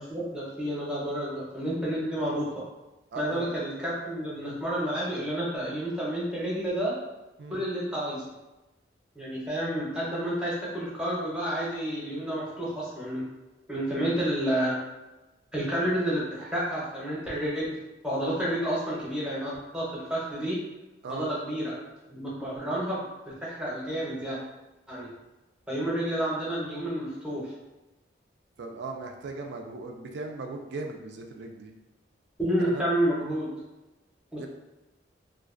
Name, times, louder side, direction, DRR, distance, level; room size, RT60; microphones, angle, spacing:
voice 1, 0.0-2.5 3.2-6.9 7.5-8.2 9.2-13.2 13.7-14.7 15.5-17.8 18.0-20.6 21.1-21.7 22.1-24.4 24.9-25.1 25.7-27.5 32.4-33.5 34.3-34.5, right 1 dB, 5° right, -7 dB, 0.6 m, -30 dB
voice 2, 3.1-3.5 4.4-4.6 7.4-7.6 18.4-18.5 21.0-21.3 28.6-31.7 32.7-32.8 34.4-34.5, right 3 dB, 65° right, 3 dB, 0.3 m, -38 dB
2.4 x 2.2 x 2.4 m, 1.0 s
head